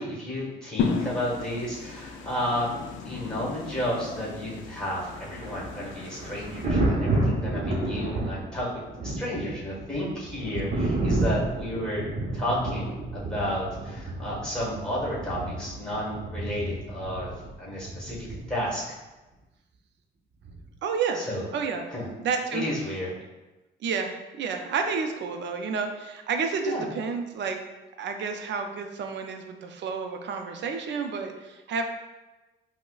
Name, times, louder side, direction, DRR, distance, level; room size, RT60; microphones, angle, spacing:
voice 1, 0.0-2.7 3.0-8.7 9.0-12.0 12.3-18.8 21.1-21.5 21.9-22.1 22.5-23.1 26.6-26.9, equal, 5° left, -6 dB, 1.5 m, -32 dB
sound 1, 0.8-6.7, left 5 dB, 75° left, 0.4 m, -34 dB
Thunder, 5.2-18.8 20.4-20.7, right 2 dB, 45° right, 0.8 m, -31 dB
voice 2, 20.8-21.2 21.5-21.8 22.2-22.7 23.8-27.6 28.0-31.8, right 5 dB, 65° right, 5 dB, 0.5 m, -30 dB
5.2 x 2.1 x 2.4 m, 1.1 s
cardioid pair, 90°, 20 cm